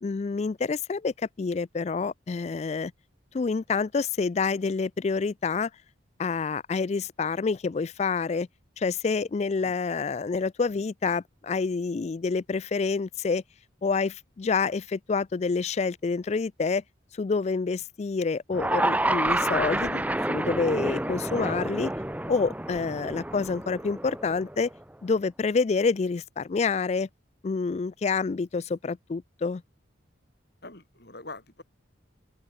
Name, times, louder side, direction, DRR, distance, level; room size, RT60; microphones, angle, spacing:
voice 1, 0.0-2.9 3.3-5.7 6.2-8.5 8.8-13.4 13.8-16.8 17.2-21.9 22.3-24.7 25.0-27.1 27.4-29.6, left 4 dB, 35° left, 0.3 m, -28 dB
sound 1, 18.5-24.8, right 1 dB, 10° right, 0.9 m, -29 dB
voice 2, 30.6-31.6, left 2 dB, 55° left, 4.0 m, -44 dB
head